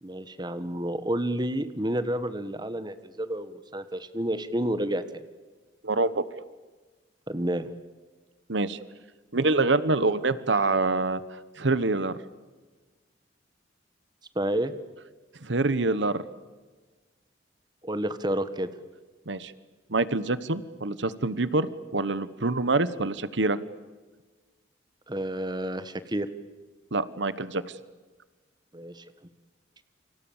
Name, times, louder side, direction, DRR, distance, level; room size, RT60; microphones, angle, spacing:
voice 1, 0.0-5.3 7.3-7.7 14.3-14.7 17.8-18.7 25.1-26.3 28.7-29.0, right 1 dB, 25° right, 12 dB, 1.4 m, -30 dB
voice 2, 5.8-6.2 8.5-8.8 9.3-12.2 15.4-16.2 19.3-19.5 19.9-21.7 21.9-23.6 26.9-27.6, right 3 dB, 75° right, 15 dB, 1.2 m, -26 dB
29.0 x 25.5 x 7.3 m, 1.3 s
head